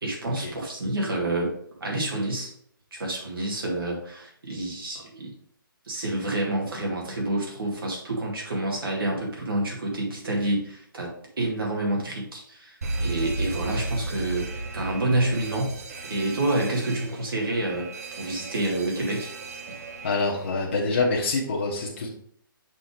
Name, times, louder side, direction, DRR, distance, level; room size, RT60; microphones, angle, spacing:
voice 1, 0.0-1.5 1.8-2.5 2.9-5.3 5.9-11.1 11.4-14.5 14.7-15.7 16.1-17.9 18.1-19.3, right 1 dB, 75° right, -2 dB, 2.3 m, -28 dB
Alarm, 12.8-20.5, right 2 dB, 45° right, 0.7 m, -34 dB
voice 2, 20.0-22.1, left 3 dB, 35° left, -4 dB, 1.0 m, -25 dB
6.0 x 3.5 x 5.1 m, 0.63 s
hypercardioid pair, 175°, 12 cm